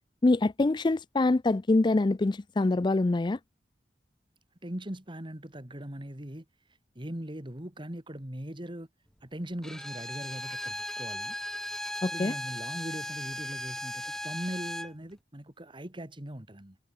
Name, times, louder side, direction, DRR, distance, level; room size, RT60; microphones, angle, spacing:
voice 1, 0.2-3.4 12.0-12.3, left 2 dB, 25° left, 0.4 m, -25 dB
voice 2, 4.6-8.9 9.2-11.4 12.1-16.8, right 1 dB, 30° right, 2.4 m, -40 dB
Bowed string instrument, 9.6-14.9, left 1 dB, 5° left, 1.0 m, -37 dB
head